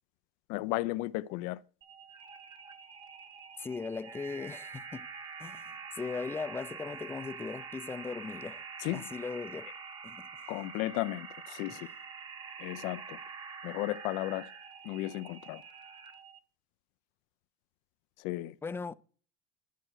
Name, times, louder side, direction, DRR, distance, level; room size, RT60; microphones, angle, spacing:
voice 1, 0.5-1.6 8.8-9.1 10.5-11.9 12.6-13.2 13.6-14.5 14.8-15.6 18.2-18.6, left 17 dB, 65° left, 0.5 m, -34 dB
sound 1, 1.8-16.4, right 5 dB, 30° right, 1.2 m, -46 dB
voice 2, 3.6-5.1 5.4-8.6 8.9-9.7 10.0-10.3 11.7-11.8 18.6-19.0, left 4 dB, 15° left, 0.5 m, -39 dB
11.0 x 4.4 x 6.3 m
supercardioid pair, 110°, 14 cm